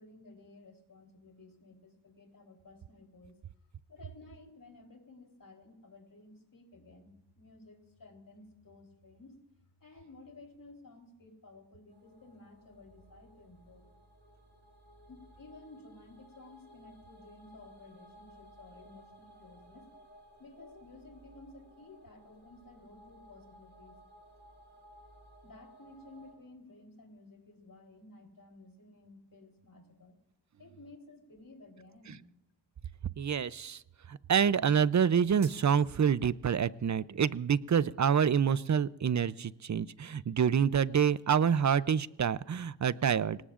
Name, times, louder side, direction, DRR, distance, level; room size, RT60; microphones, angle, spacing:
voice 1, 0.0-3.4 3.9-9.4 9.8-13.8 15.1-19.9 20.4-24.0 25.4-30.1 30.6-32.3, left 2 dB, 50° left, 3 dB, 3.8 m, -54 dB
sound 1, 11.9-26.3, right 1 dB, 25° right, 6.7 m, -58 dB
voice 2, 33.2-33.8 34.1-43.4, right 7 dB, 45° right, 18 dB, 0.6 m, -27 dB
sound 2, 35.4-36.4, right 5 dB, 65° right, 4.9 m, -53 dB
26.5 x 18.5 x 2.5 m, 0.89 s
cardioid pair, 75°, 42 cm